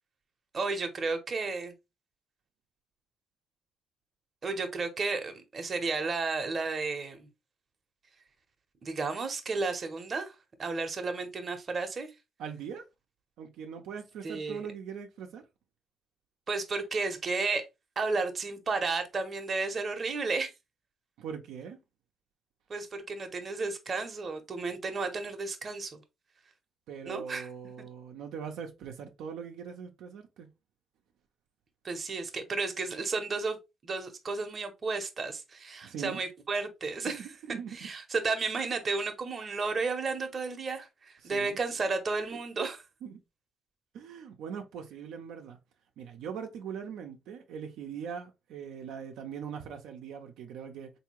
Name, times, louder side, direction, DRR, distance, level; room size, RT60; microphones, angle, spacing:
voice 1, 0.5-1.7 4.4-7.3 8.8-12.1 14.2-14.7 16.5-17.6 18.0-20.5 22.7-26.0 27.1-27.5 31.8-37.3 37.7-42.8, right 4 dB, 40° right, 0.8 m, -33 dB
voice 2, 12.4-12.9 13.4-15.4 21.2-21.8 26.9-30.5 35.8-36.2 37.1-37.9 41.2-41.6 42.6-42.7 43.0-43.2 43.9-45.6 46.0-50.9, right 7 dB, 85° right, 0.6 m, -41 dB
3.6 x 2.7 x 3.0 m
cardioid pair, 90°, 0 cm